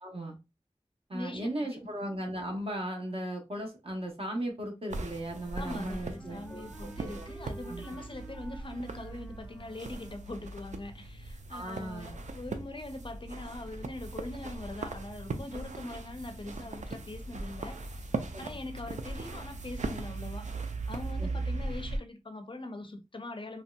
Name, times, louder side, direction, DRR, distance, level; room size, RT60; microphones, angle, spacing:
voice 1, 0.0-0.4 1.1-7.3 7.6-7.9 11.5-12.1 18.3-18.4 21.2-21.4, right 1 dB, 55° right, 0.9 m, -37 dB
voice 2, 1.1-1.8 5.5-17.8 18.4-20.6 20.9-23.6, left 2 dB, 45° left, 0.5 m, -42 dB
sound 1, 4.9-22.0, right 3 dB, 85° right, 0.4 m, -39 dB
Wind instrument woodwind instrument, 5.1-10.5, right 1 dB, 5° right, 0.5 m, -52 dB
3.0 x 2.6 x 2.2 m
wide cardioid pair, 55°, 12 cm